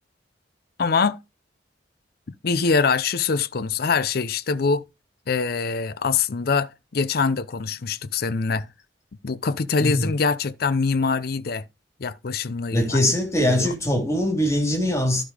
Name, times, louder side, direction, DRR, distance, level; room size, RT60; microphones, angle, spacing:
voice 1, 0.8-1.2 2.4-4.8 5.3-8.7 9.2-11.6 12.0-13.0 13.4-13.7, left 5 dB, 55° left, 0.6 m, -24 dB
voice 2, 12.7-15.2, left 1 dB, 15° left, 3.9 m, -22 dB
12.0 x 5.2 x 4.9 m
head